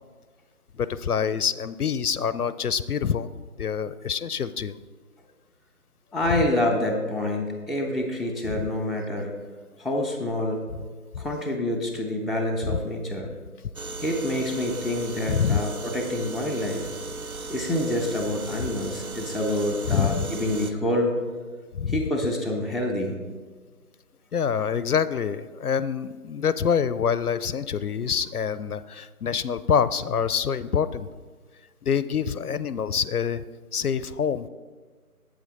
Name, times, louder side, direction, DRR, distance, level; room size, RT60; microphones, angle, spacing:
voice 1, 0.7-3.3 3.6-4.8 8.5-8.7 12.6-12.8 15.3-15.6 19.9-20.3 21.7-22.0 24.3-31.1 31.8-33.4 33.7-34.5, left 7 dB, 75° left, 15 dB, 0.5 m, -26 dB
voice 2, 6.1-9.3 9.8-10.6 11.2-13.3 14.0-16.9 17.5-21.2 21.9-23.2, left 1 dB, ahead, 3 dB, 0.5 m, -27 dB
sound 1, 13.8-20.7, right 2 dB, 65° right, 0.7 m, -36 dB
8.7 x 8.0 x 4.0 m, 1.5 s
figure-of-eight pair, 165°, 45 cm